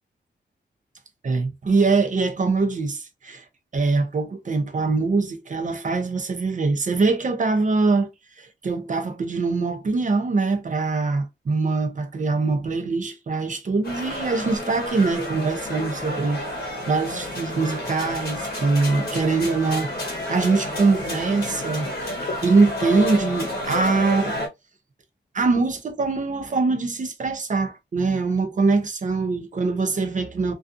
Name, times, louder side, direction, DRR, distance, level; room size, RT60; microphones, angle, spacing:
voice 1, 1.2-3.4 3.7-8.1 8.4-21.9 22.4-24.3 25.3-30.5, right 3 dB, 40° right, 0.5 m, -23 dB
sound 1, 13.8-24.5, left 1 dB, 55° left, 0.9 m, -30 dB
2.4 x 2.4 x 2.4 m
wide cardioid pair, 165°, 19 cm